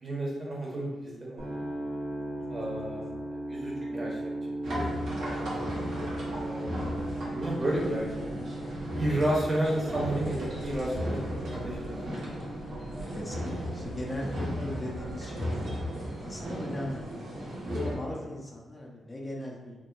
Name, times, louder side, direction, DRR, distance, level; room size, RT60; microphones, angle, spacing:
voice 1, 0.0-1.6 2.5-3.0 3.5-4.3 4.7-5.1 5.4-5.7 6.3-6.9 7.3-8.0 9.0-12.2 15.8-16.1 18.1-18.3, right 1 dB, 35° right, -4 dB, 1.0 m, -32 dB
sound 1, 1.4-17.3, right 1 dB, 50° right, 1.3 m, -39 dB
sound 2, 4.6-17.9, equal, 80° right, 1.0 m, -35 dB
voice 2, 13.1-15.6 16.2-17.1 17.7-19.8, left 1 dB, 30° left, -1 dB, 0.5 m, -38 dB
3.4 x 2.0 x 2.5 m, 1.1 s
cardioid pair, 65°, 0 cm